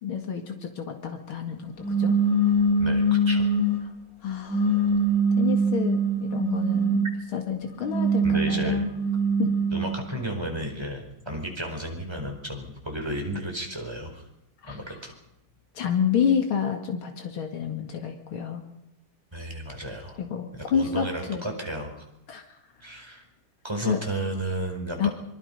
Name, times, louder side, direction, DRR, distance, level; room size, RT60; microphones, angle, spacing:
voice 1, 0.0-2.2 4.2-4.6 5.4-7.1 7.3-8.9 9.4-9.5 14.6-14.8 15.7-18.6 20.2-21.5 22.3-22.4 23.8-24.0 25.0-25.1, left 7 dB, 90° left, 4 dB, 2.9 m, -28 dB
sound 1, 1.8-3.9 4.5-7.2 7.7-10.0, right 2 dB, 40° left, 5.2 m, -23 dB
voice 2, 2.8-3.5 8.2-8.9 9.7-14.2 14.7-15.1 19.3-20.2 20.5-22.0 22.8-23.2 23.6-25.1, right 1 dB, 10° right, 2 dB, 4.6 m, -33 dB
25.5 x 24.0 x 5.5 m, 0.82 s
omnidirectional pair, 2.2 m